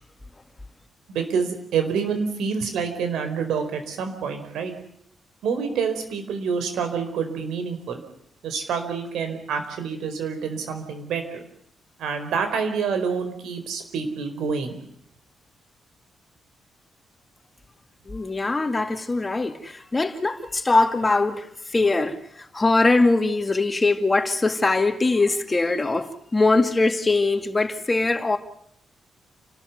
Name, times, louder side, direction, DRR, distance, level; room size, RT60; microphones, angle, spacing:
voice 1, 1.1-4.7 5.4-8.0 8.4-11.5 12.0-14.8, right 6 dB, 90° right, 4.7 m, -27 dB
voice 2, 18.1-28.4, left 3 dB, 20° left, 2.3 m, -22 dB
29.5 x 13.5 x 9.5 m
cardioid pair, 110°, 0 cm